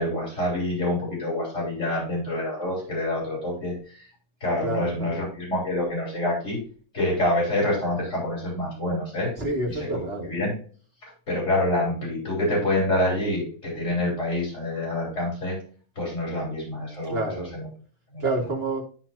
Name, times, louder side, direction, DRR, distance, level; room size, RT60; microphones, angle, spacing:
voice 1, 0.0-4.1 4.4-6.6 6.9-9.3 9.7-9.9 10.2-10.5 11.3-15.5 16.0-17.2 17.5-17.7 18.1-18.3, left 1 dB, 55° left, -5 dB, 3.8 m, -26 dB
voice 2, 4.6-5.1 9.4-10.3 17.0-17.5 18.2-18.8, right 2 dB, 45° right, -1 dB, 2.1 m, -28 dB
13.0 x 4.4 x 2.7 m, 0.42 s
omnidirectional pair, 1.5 m